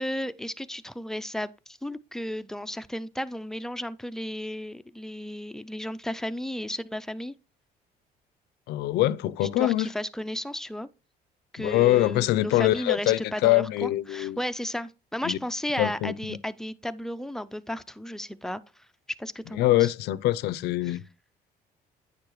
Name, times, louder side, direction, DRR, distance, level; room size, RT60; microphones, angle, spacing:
voice 1, 0.0-7.3 9.4-10.9 11.5-18.9 19.2-19.9 20.8-21.0, left 1 dB, 5° left, 0.4 m, -34 dB
voice 2, 8.7-9.9 11.6-14.4 15.2-15.4 15.8-16.4 19.6-21.0, left 15 dB, 80° left, 0.5 m, -24 dB
9.6 x 6.7 x 3.1 m
cardioid pair, 110°, 17 cm